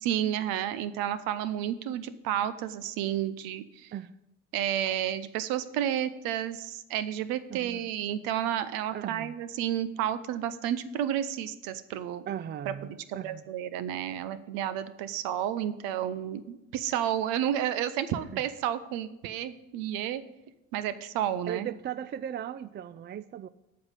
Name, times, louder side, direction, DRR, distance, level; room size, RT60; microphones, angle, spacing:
voice 1, 0.0-3.9 4.5-12.3 12.8-20.2 20.7-21.7, right 10 dB, 75° right, 0.8 m, -31 dB
voice 2, 7.5-7.9 8.9-9.3 12.3-13.4 18.3-18.4 21.5-23.5, right 10 dB, 30° right, 0.4 m, -37 dB
8.8 x 5.7 x 8.0 m
hypercardioid pair, 65°, 35 cm